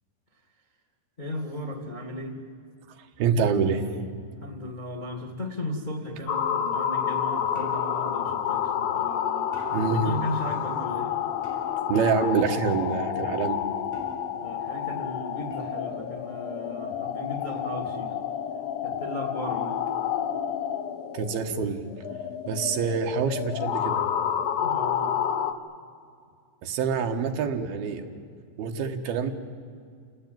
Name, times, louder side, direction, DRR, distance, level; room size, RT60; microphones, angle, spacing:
voice 1, 1.2-2.4 4.4-9.5 10.0-11.1 14.4-18.1 18.8-19.8 24.6-25.2, left 1 dB, 90° left, 4 dB, 0.4 m, -36 dB
voice 2, 3.2-3.8 9.7-10.1 11.9-13.6 21.1-21.8 22.5-24.0 26.6-28.1 28.6-29.3, right 6 dB, 65° right, 4 dB, 3.1 m, -26 dB
sound 1, 6.3-25.5, left 9 dB, 65° left, 2.5 m, -29 dB
sound 2, 7.5-8.1 9.5-10.0 11.4-11.9 13.9-14.5 15.5-16.0 17.4-17.8, equal, 10° right, 5.6 m, -47 dB
28.5 x 18.5 x 9.2 m, 2.2 s
omnidirectional pair, 5.1 m